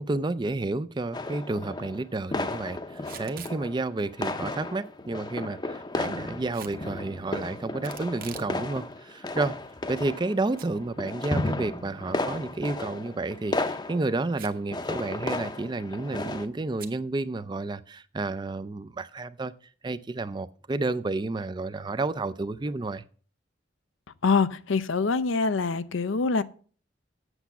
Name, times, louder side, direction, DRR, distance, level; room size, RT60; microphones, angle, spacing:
voice 1, 0.0-9.6 9.9-19.5 19.8-23.0, right 2 dB, 25° right, 0.4 m, -31 dB
sound 1, 1.1-2.0 2.3-3.9 4.1-16.5, left 2 dB, 20° left, 0.6 m, -34 dB
Packing tape duct tape / Tearing, 3.0-3.6 6.5-6.8 7.8-8.5 8.9-9.0 9.7-10.3 10.6-10.7 11.1-11.2 13.1-13.4 14.3-14.7 15.0-15.1 15.3-15.7 16.8-17.0, right 7 dB, 50° right, 1.0 m, -43 dB
voice 2, 24.2-26.4, left 4 dB, 80° left, 0.6 m, -24 dB
8.1 x 7.1 x 5.8 m
head